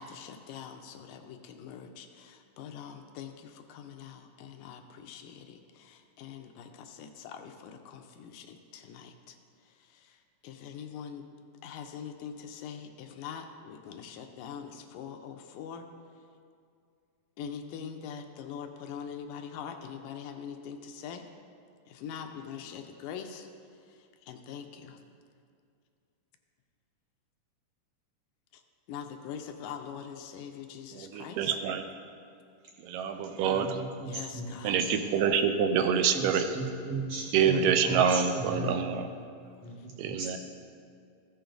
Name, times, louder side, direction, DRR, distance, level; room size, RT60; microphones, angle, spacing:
voice 1, 0.0-9.4 10.4-11.2 11.6-15.8 17.4-21.2 21.9-23.5 24.3-25.0 28.9-31.5 34.1-34.8, left 7 dB, 80° left, 5 dB, 2.3 m, -43 dB
voice 2, 30.9-31.8 32.8-33.8 34.6-36.5 37.3-39.1 40.0-40.4, right 7 dB, 80° right, 8 dB, 2.2 m, -26 dB
voice 3, 33.5-34.9 36.1-38.7 39.6-40.4, right 2 dB, 55° right, -2 dB, 2.2 m, -36 dB
14.5 x 7.0 x 3.9 m, 2.3 s
omnidirectional pair, 3.8 m